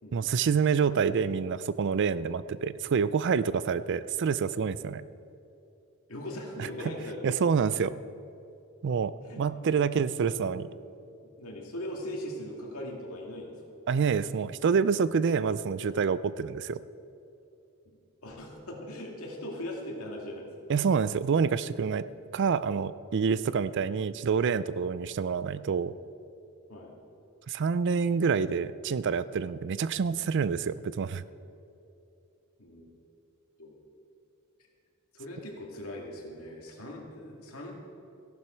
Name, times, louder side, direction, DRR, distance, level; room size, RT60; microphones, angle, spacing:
voice 1, 0.1-5.1 7.2-7.9 8.8-10.7 13.9-16.8 20.7-22.0 22.3-25.9 27.5-31.2, right 6 dB, 55° right, 16 dB, 0.4 m, -27 dB
voice 2, 6.1-7.3 9.2-9.8 10.2-10.5 11.4-13.5 17.9-18.0 18.2-20.7 23.6-23.8 26.7-26.9 32.6-32.8 33.6-33.7 35.1-37.7, left 1 dB, 75° left, -1 dB, 2.4 m, -40 dB
14.5 x 12.0 x 4.5 m, 2.7 s
head